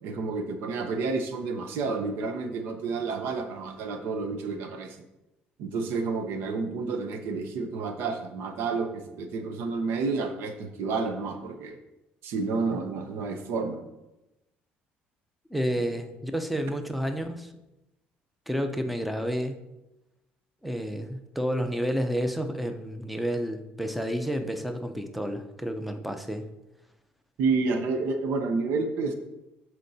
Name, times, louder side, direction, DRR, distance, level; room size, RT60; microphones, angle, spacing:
voice 1, 0.0-5.0 5.6-11.8 12.2-13.8 15.8-15.9 27.4-29.2, right 4 dB, 75° right, 6 dB, 0.8 m, -30 dB
voice 2, 15.5-17.5 18.5-19.6 20.6-26.5, equal, ahead, 7 dB, 0.6 m, -30 dB
13.0 x 4.5 x 2.8 m, 0.97 s
cardioid pair, 100°, 4 cm